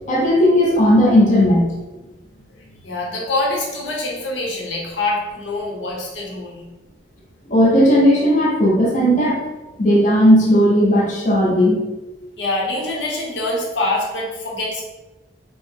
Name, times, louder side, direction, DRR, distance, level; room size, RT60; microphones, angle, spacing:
voice 1, 0.1-1.7 7.5-9.4 9.8-11.8, equal, 40° left, -4 dB, 0.7 m, -15 dB
voice 2, 2.8-6.6 12.4-14.8, left 2 dB, 85° left, -3 dB, 1.0 m, -24 dB
4.5 x 2.1 x 3.6 m, 1.1 s
head